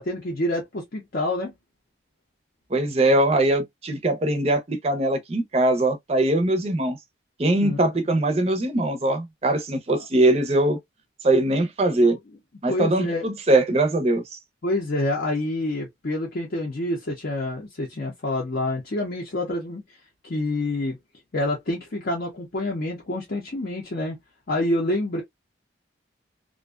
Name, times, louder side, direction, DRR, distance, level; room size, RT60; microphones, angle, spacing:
voice 1, 0.0-1.5 7.6-7.8 9.9-10.0 12.0-12.2 12.7-13.3 14.6-19.8 20.2-21.0 21.3-24.2 24.5-25.2, left 1 dB, 50° left, 0.6 m, -27 dB
voice 2, 2.7-7.0 7.4-10.8 11.2-12.2 12.6-14.2, right 1 dB, 30° right, 0.5 m, -21 dB
2.5 x 2.2 x 2.2 m
head